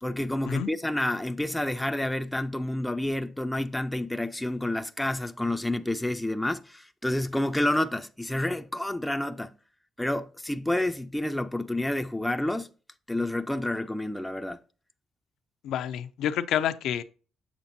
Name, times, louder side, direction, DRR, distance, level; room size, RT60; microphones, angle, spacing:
voice 1, 0.0-9.6 10.0-12.7 13.1-14.6, left 1 dB, 5° left, 0.5 m, -29 dB
voice 2, 15.6-17.0, left 10 dB, 80° left, 0.6 m, -28 dB
7.2 x 7.2 x 2.7 m
cardioid pair, 90°, 0 cm